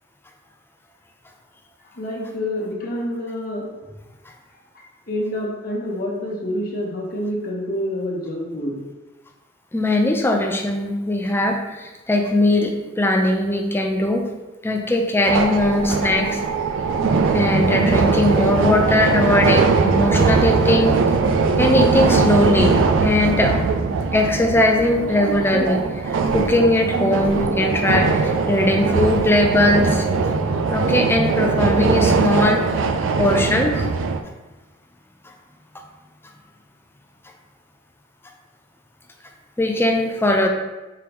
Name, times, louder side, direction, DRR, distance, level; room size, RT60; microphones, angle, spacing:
voice 1, 1.9-3.7 4.7-8.8, left 1 dB, 45° left, -2 dB, 0.9 m, -27 dB
voice 2, 9.7-14.3 14.6-16.4 17.3-21.0 21.6-23.7 24.1-30.0 30.7-32.6 33.2-33.8 39.6-40.5, left 1 dB, 10° left, 3 dB, 0.4 m, -20 dB
sound 1, 15.3-34.2, right 4 dB, 75° right, 0.4 m, -20 dB
4.7 x 3.4 x 3.0 m, 1.1 s
head